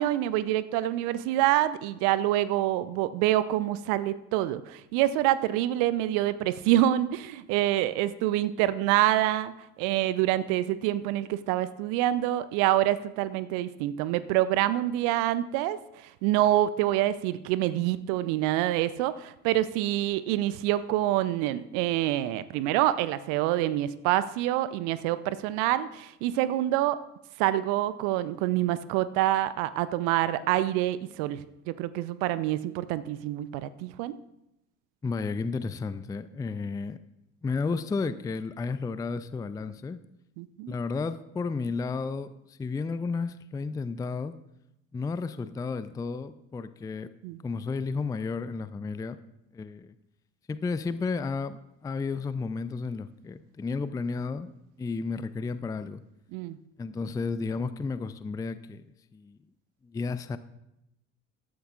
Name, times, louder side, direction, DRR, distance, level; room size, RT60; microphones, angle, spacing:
voice 1, 0.0-9.5 9.8-27.0 27.4-34.2 40.4-40.7 47.2-47.4 56.3-56.6, right 14 dB, 55° right, 16 dB, 0.6 m, -26 dB
voice 2, 35.0-37.0 37.4-40.0 40.7-44.3 44.9-47.1 47.4-49.2 49.5-49.9 50.5-54.5 54.8-56.0 56.8-58.8 59.1-59.4 59.9-60.4, left 4 dB, 10° left, 14 dB, 0.4 m, -32 dB
14.5 x 12.5 x 2.5 m, 0.87 s
figure-of-eight pair, 55°, 37 cm